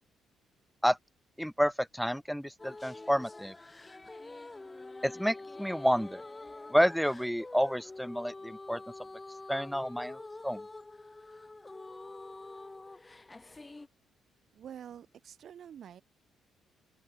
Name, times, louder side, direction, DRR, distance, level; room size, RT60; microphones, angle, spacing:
voice 1, 1.4-3.5 5.0-6.2 6.7-8.8 9.5-10.7, equal, ahead, 0.6 m, -29 dB
sound 1, 2.6-13.9, left 2 dB, 20° left, 2.8 m, -46 dB
voice 2, 14.5-16.0, right 9 dB, 60° right, 3.5 m, -47 dB
open air
cardioid pair, 90°, 0 cm